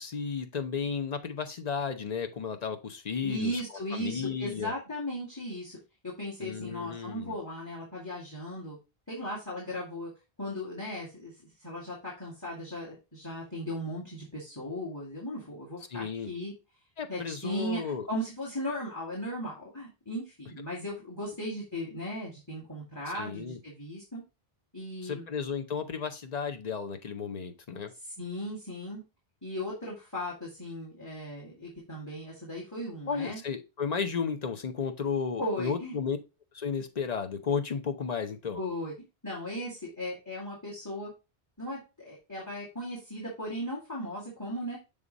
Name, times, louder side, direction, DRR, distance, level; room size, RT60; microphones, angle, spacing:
voice 1, 0.0-3.6 3.9-4.7 6.4-7.4 15.9-16.3 17.0-18.1 23.1-23.6 25.0-27.9 33.1-36.2 36.5-38.6, left 6 dB, 45° left, 0.8 m, -33 dB
voice 2, 3.2-5.8 6.0-8.8 9.1-10.1 10.4-16.5 17.1-24.2 24.7-25.3 28.2-29.0 29.4-33.4 35.4-36.0 38.5-38.9 39.2-41.1 41.6-44.8, equal, 15° left, 2.1 m, -37 dB
6.7 x 3.7 x 4.0 m
omnidirectional pair, 1.0 m